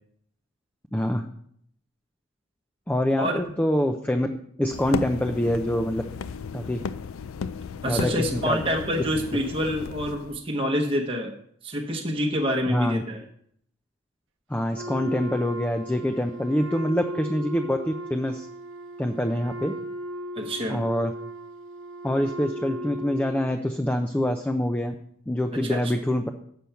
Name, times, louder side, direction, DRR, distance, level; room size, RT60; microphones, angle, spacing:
voice 1, 0.9-1.2 2.9-4.3 4.6-6.0 6.5-6.8 7.9-8.6 12.7-13.0 14.5-18.5 19.0-19.7 20.7-21.1 22.0-24.9 25.3-26.3, left 1 dB, 5° left, 5 dB, 0.4 m, -25 dB
sound 1, 4.7-10.4, left 5 dB, 70° left, 0.4 m, -35 dB
voice 2, 7.8-11.3 11.6-13.2 20.4-20.8 25.5-25.9, equal, 25° right, 1 dB, 0.9 m, -27 dB
Wind instrument woodwind instrument, 14.7-23.6, right 1 dB, 60° right, 0.9 m, -37 dB
7.7 x 6.9 x 5.7 m, 0.68 s
head